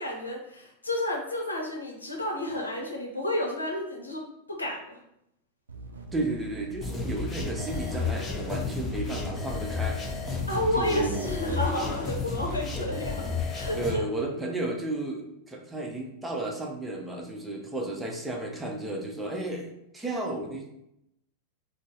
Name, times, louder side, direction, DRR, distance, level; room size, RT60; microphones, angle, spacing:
voice 1, 0.0-4.2 4.6-4.9 10.5-14.0, left 1 dB, 80° left, 0 dB, 0.7 m, -31 dB
sound 1, 5.7-11.6, right 3 dB, 75° right, 0.5 m, -43 dB
voice 2, 6.1-10.0 10.8-11.3 12.7-12.9 13.7-20.7, right 2 dB, 10° right, 0 dB, 0.7 m, -33 dB
sound 2, 6.8-13.9, left 4 dB, 20° left, 0.8 m, -32 dB
3.8 x 2.0 x 3.7 m, 0.81 s
figure-of-eight pair, 90°, 0 cm